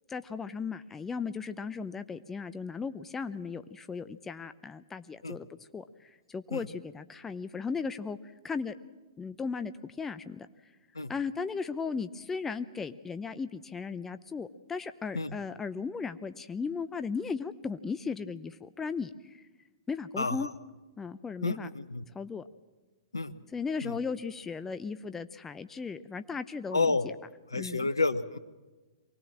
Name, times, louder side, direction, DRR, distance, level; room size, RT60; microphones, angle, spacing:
voice 1, 0.1-5.5 5.7-8.7 9.2-10.5 11.1-19.4 19.9-20.5 21.0-21.7 22.1-22.4 23.5-27.2 27.5-27.9, left 5 dB, 15° left, 11 dB, 0.7 m, -36 dB
voice 2, 20.2-20.5 21.4-22.0 23.1-23.3 23.8-23.9 26.7-27.1 27.5-28.4, left 3 dB, 90° left, 14 dB, 1.0 m, -30 dB
24.0 x 18.5 x 7.4 m, 1.2 s
figure-of-eight pair, 115°, 2 cm